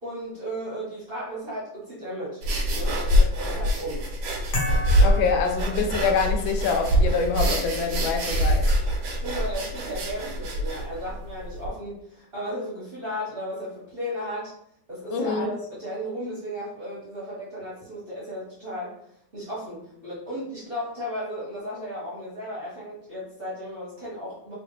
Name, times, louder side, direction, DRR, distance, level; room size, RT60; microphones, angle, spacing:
voice 1, 0.0-2.4 2.7-4.1 9.2-14.5 14.9-19.0 19.3-24.5, equal, 35° right, -6 dB, 1.0 m, -35 dB
sound 1, 2.4-11.7, equal, 85° right, 1.5 m, -24 dB
sound 2, 4.5-6.4, left 2 dB, 55° left, 1.4 m, -33 dB
voice 2, 5.0-8.6 15.1-15.5, left 5 dB, 80° left, 4 dB, 1.4 m, -25 dB
3.6 x 3.0 x 3.1 m, 0.71 s
omnidirectional pair, 2.1 m